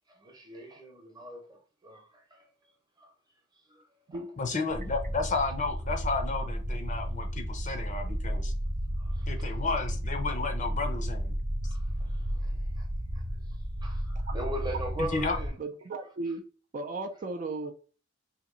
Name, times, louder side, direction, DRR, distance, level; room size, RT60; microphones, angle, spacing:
voice 1, 0.1-2.5 3.0-3.1 3.6-4.2 8.0-8.1 9.0-9.6 11.6-12.9 13.1-15.6, equal, 20° right, 0.8 m, -41 dB
voice 2, 4.4-8.5 9.3-11.4 15.1-15.4, left 4 dB, 40° left, 0.6 m, -32 dB
sound 1, 4.7-15.5, equal, 60° right, 0.8 m, -33 dB
voice 3, 15.6-16.5 16.7-17.7, right 3 dB, 40° right, 0.4 m, -35 dB
2.9 x 2.7 x 3.8 m
head